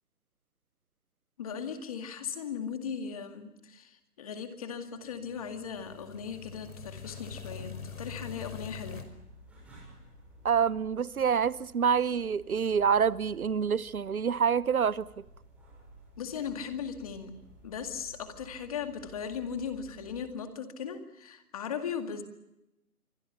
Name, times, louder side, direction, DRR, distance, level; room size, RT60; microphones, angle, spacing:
voice 1, 1.4-9.0 16.2-17.3 17.6-22.2, left 7 dB, 25° left, 2.1 m, -38 dB
sound 1, 5.2-9.0, left 6 dB, 70° left, 5.8 m, -44 dB
sound 2, 6.6-20.2, right 1 dB, 5° right, 7.5 m, -55 dB
voice 2, 10.4-15.0, right 7 dB, 65° right, 1.0 m, -27 dB
29.0 x 25.0 x 5.7 m
hypercardioid pair, 170°, 47 cm